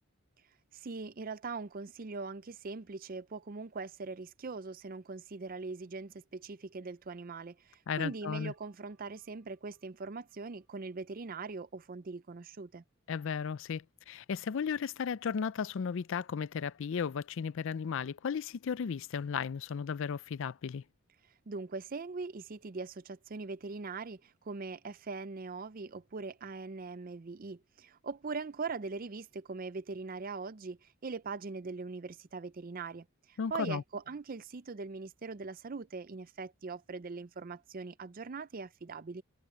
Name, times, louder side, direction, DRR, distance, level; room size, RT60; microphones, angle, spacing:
voice 1, 0.7-12.8 21.5-39.2, right 4 dB, 40° right, 0.5 m, -41 dB
voice 2, 7.9-8.5 13.1-20.8 33.4-33.8, left 6 dB, 60° left, 0.4 m, -35 dB
sound 1, 8.0-13.2, right 9 dB, 70° right, 5.3 m, -81 dB
head